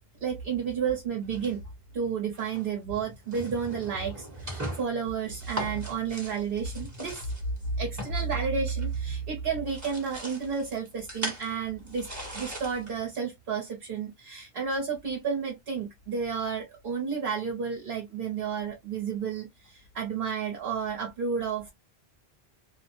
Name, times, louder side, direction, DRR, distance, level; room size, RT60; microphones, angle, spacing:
voice 1, 0.2-1.6 1.9-7.3 7.8-12.1 12.3-21.7, right 6 dB, 65° right, 1.0 m, -31 dB
sound 1, 1.3-1.9 2.3-2.7 3.2-9.2 9.5-13.2, right 1 dB, 20° right, 1.0 m, -40 dB
2.5 x 2.1 x 2.8 m
omnidirectional pair, 1.0 m